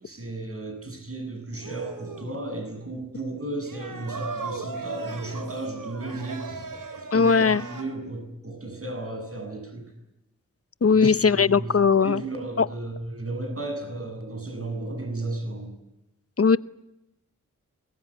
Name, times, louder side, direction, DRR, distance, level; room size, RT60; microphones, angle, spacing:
voice 1, 0.0-6.7 7.0-9.8 11.0-11.7 12.0-15.7, right 2 dB, 45° right, 7.7 m, -34 dB
sound 1, 1.6-2.4 3.6-7.8, right 4 dB, 85° right, 4.0 m, -37 dB
voice 2, 7.1-7.6 10.8-12.2 12.6-12.7 16.4-16.6, left 5 dB, 50° left, 0.9 m, -19 dB
24.5 x 21.5 x 9.9 m
wide cardioid pair, 95°, 32 cm